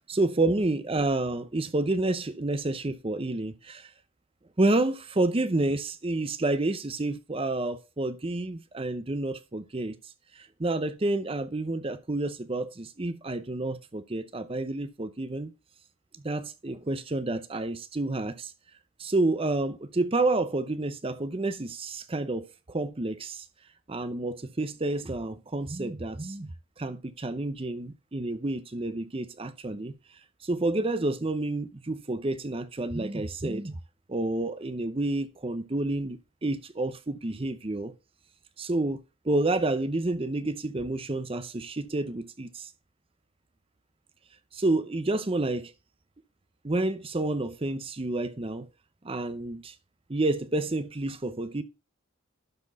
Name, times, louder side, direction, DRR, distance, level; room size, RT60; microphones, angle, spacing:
voice 1, 0.1-3.9 4.6-9.9 10.6-15.5 16.2-18.5 19.0-23.4 23.9-26.5 26.8-30.0 30.4-33.7 34.1-37.9 38.6-42.7 44.5-45.7 46.6-48.7 49.0-49.7 50.1-51.6, right 2 dB, 25° right, 0.6 m, -29 dB
12.0 x 4.3 x 4.1 m
head